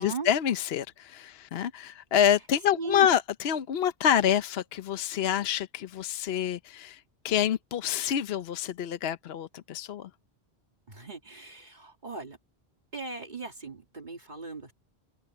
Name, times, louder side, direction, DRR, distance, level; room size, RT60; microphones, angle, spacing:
voice 1, 0.0-10.1, left 9 dB, 70° left, 0.9 m, -27 dB
voice 2, 2.8-3.1 10.9-12.4 12.9-14.7, right 4 dB, 45° right, 1.9 m, -38 dB
open air
omnidirectional pair, 1.1 m